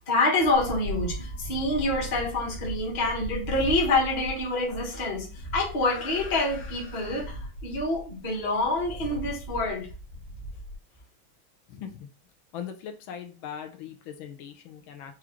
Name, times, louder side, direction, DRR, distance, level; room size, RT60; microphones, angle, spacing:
voice 1, 0.1-9.9, left 2 dB, 35° left, 0.8 m, -27 dB
sound 1, 0.5-10.8, equal, 55° left, 1.4 m, -38 dB
voice 2, 11.7-12.1 12.5-15.2, left 8 dB, 80° left, 1.4 m, -40 dB
4.8 x 2.4 x 2.9 m
omnidirectional pair, 2.2 m